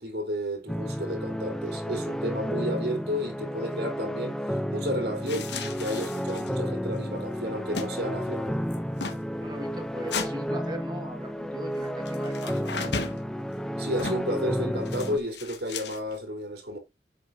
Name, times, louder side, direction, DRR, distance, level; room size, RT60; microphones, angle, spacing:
voice 1, 0.0-8.6 13.8-16.8, equal, 70° right, 3.6 m, -32 dB
sound 1, 0.7-15.2, equal, 5° left, 0.6 m, -32 dB
sound 2, 5.3-6.6 6.9-7.0 7.3-7.9 8.1-8.4 8.7-9.2 10.1-10.3 12.0-13.2 14.0-14.3 14.8-16.2, left 4 dB, 80° left, 1.5 m, -35 dB
voice 2, 9.4-12.6, right 1 dB, 25° right, 1.6 m, -39 dB
8.7 x 7.5 x 2.7 m
head